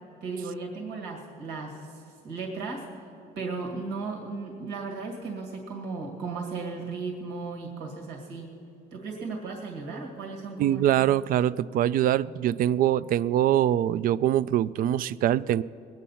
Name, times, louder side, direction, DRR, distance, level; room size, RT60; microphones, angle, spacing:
voice 1, 0.2-2.9 3.4-8.5 8.9-10.8, right 4 dB, 90° right, 0 dB, 2.0 m, -35 dB
voice 2, 10.6-15.6, right 11 dB, 60° right, 18 dB, 0.4 m, -23 dB
20.5 x 9.2 x 5.7 m, 2.7 s
cardioid pair, 110°, 17 cm